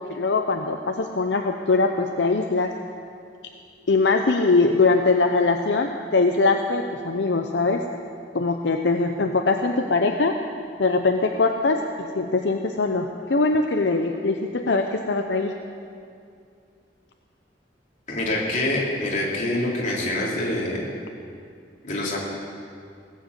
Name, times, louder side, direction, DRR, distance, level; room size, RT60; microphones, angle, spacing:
voice 1, 0.1-2.7 3.9-7.8 8.3-10.4 10.8-15.5, left 3 dB, 75° left, 4 dB, 0.7 m, -22 dB
voice 2, 18.1-20.9 21.8-22.2, left 1 dB, 45° left, -4 dB, 3.1 m, -25 dB
18.5 x 7.4 x 8.1 m, 2.4 s
head